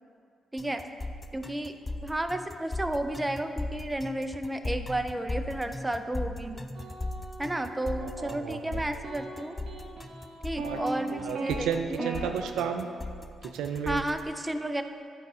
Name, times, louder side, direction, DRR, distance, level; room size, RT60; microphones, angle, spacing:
sound 1, 0.6-14.2, left 2 dB, 25° left, 0.5 m, -38 dB
voice 1, 1.3-1.8 2.0-6.7 7.4-9.6 10.4-12.1 13.9-14.8, right 1 dB, 15° right, 8 dB, 0.6 m, -32 dB
sound 2, 6.7-8.3 9.0-11.5 12.0-12.2, right 2 dB, 55° right, 1.3 m, -39 dB
voice 2, 8.0-8.8 10.6-10.8 11.1-12.9 13.4-14.0, right 7 dB, 75° right, 7 dB, 0.4 m, -32 dB
10.5 x 4.7 x 3.9 m, 2.3 s
hypercardioid pair, 45°, 0 cm